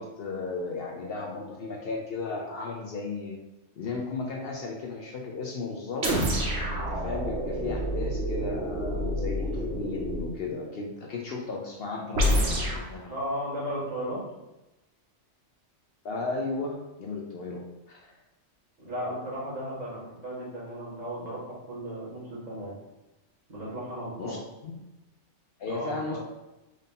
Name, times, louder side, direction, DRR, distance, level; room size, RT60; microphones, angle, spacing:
voice 1, 0.0-3.4 3.8-6.1 6.7-12.4 12.7-13.1 16.0-18.1 24.2-24.4 24.6-24.7 25.6-26.2, left 3 dB, 65° left, -1 dB, 0.7 m, -35 dB
sound 1, 6.0-10.3 12.1-12.9, equal, 70° right, 1.1 m, -28 dB
voice 2, 13.1-14.2 18.8-22.8 23.5-24.4 25.6-26.2, equal, 35° right, -8 dB, 1.4 m, -35 dB
3.8 x 2.7 x 3.6 m, 0.97 s
omnidirectional pair, 1.2 m